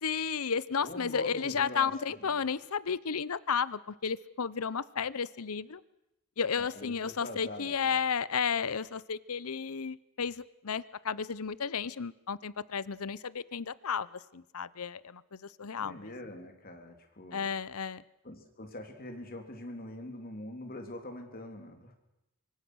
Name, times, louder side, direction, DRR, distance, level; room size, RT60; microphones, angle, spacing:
voice 1, 0.0-5.8 6.4-16.1 17.3-18.0, left 6 dB, 75° left, 19 dB, 0.8 m, -33 dB
voice 2, 0.8-2.3 6.6-8.0 15.7-17.5 18.2-22.0, left 1 dB, 40° left, 5 dB, 3.5 m, -43 dB
25.0 x 24.5 x 6.4 m, 0.88 s
head